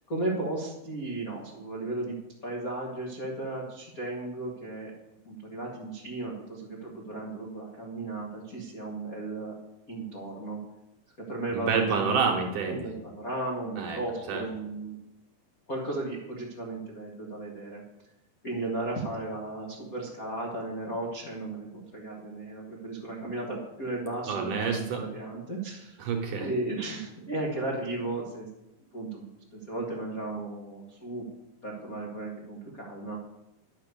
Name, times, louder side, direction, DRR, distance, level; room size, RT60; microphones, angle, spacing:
voice 1, 0.1-2.1 2.4-4.9 5.2-9.5 9.9-10.6 11.3-12.3 12.7-15.0 15.7-17.8 18.4-26.0 26.4-28.5 28.9-31.2 31.6-33.2, right 2 dB, 50° left, -2 dB, 1.0 m, -35 dB
voice 2, 11.5-12.9 13.8-14.0 14.3-14.4 24.3-25.0 26.0-26.5, right 5 dB, 65° right, 2 dB, 2.2 m, -28 dB
11.0 x 6.9 x 6.8 m, 0.92 s
omnidirectional pair, 4.7 m